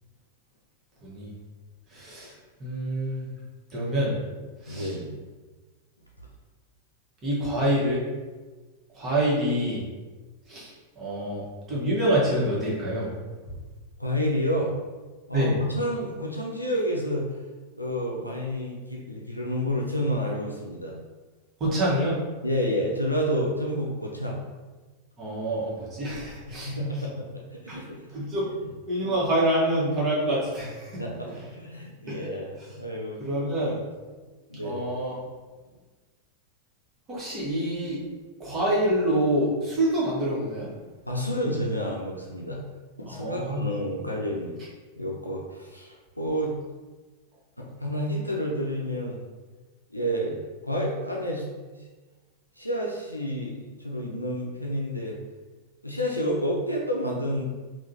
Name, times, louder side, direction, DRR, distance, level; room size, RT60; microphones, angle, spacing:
voice 1, 1.9-2.3 2.6-3.3 3.7-4.2 4.6-4.9 7.2-8.0 8.9-9.8 10.5-13.1 15.3-15.5 21.6-22.1 25.2-26.7 27.7-27.8 28.1-28.5 28.9-31.0 32.1-32.2 33.2-33.8 34.6-35.1 37.1-38.0 38.4-40.7 43.1-43.7, right 1 dB, 30° right, -6 dB, 1.3 m, -26 dB
voice 2, 4.7-5.2 14.0-14.7 15.3-17.3 17.7-21.0 22.4-24.5 26.5-28.2 28.4-28.5 31.0-33.2 34.5-34.8 41.1-42.6 43.0-44.6 45.0-46.5 47.6-49.2 49.9-50.4 50.6-51.8 52.6-55.2 55.8-57.5, equal, 85° left, -2 dB, 0.4 m, -29 dB
3.6 x 2.5 x 2.7 m, 1.3 s
figure-of-eight pair, 90°, 0 cm